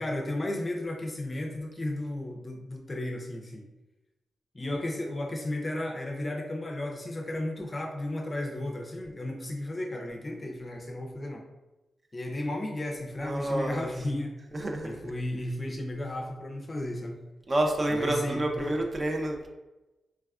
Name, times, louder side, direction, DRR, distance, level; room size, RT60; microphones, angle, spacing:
voice 1, 0.0-3.7 4.5-11.4 12.1-14.4 14.8-17.2 17.9-18.8, left 1 dB, 30° left, 2 dB, 0.4 m, -34 dB
voice 2, 13.2-13.9 14.5-14.9 17.5-19.5, right 1 dB, 35° right, 2 dB, 0.5 m, -28 dB
3.3 x 2.3 x 2.3 m, 1.0 s
cardioid pair, 90°, 0 cm